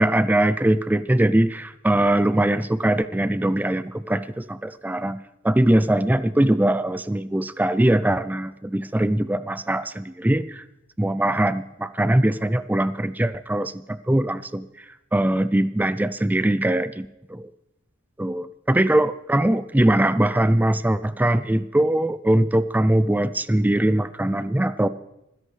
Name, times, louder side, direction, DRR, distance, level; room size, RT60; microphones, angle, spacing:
voice 1, 0.0-5.2 5.4-10.6 11.0-14.7 15.1-17.5 18.2-24.9, right 1 dB, 10° right, 14 dB, 0.4 m, -21 dB
29.5 x 11.0 x 3.3 m, 0.87 s
head